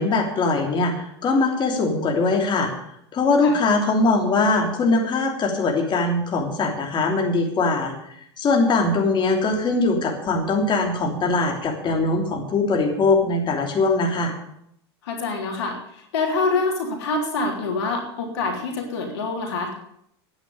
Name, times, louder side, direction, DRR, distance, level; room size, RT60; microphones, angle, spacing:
voice 1, 0.0-2.7 3.1-7.9 8.4-14.3, left 3 dB, 35° left, 2 dB, 3.2 m, -21 dB
voice 2, 15.0-19.8, left 3 dB, 75° left, 2 dB, 3.3 m, -26 dB
9.8 x 9.8 x 9.5 m, 0.73 s
hypercardioid pair, 95°, 14 cm